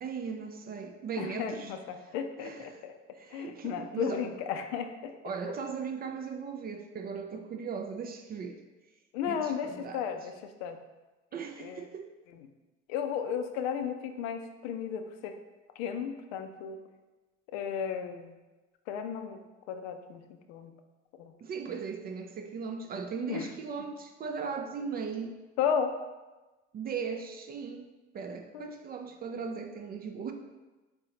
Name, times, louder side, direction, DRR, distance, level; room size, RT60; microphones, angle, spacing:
voice 1, 0.0-1.7 2.4-2.8 3.1-4.2 5.2-8.6 9.3-10.1 11.3-12.1 21.4-25.4 26.7-27.9 28.1-30.3, right 5 dB, 30° right, 5 dB, 0.4 m, -38 dB
voice 2, 1.2-2.9 3.3-5.1 9.1-10.8 11.6-11.9 12.3-12.5 12.9-15.3 15.8-16.8 17.5-18.3 18.9-19.4 19.7-20.7 21.2-21.3 23.3-23.5 25.6-25.9 28.5-28.7, left 7 dB, 65° left, 7 dB, 0.5 m, -34 dB
4.0 x 3.6 x 2.9 m, 1.2 s
figure-of-eight pair, 55°, 35 cm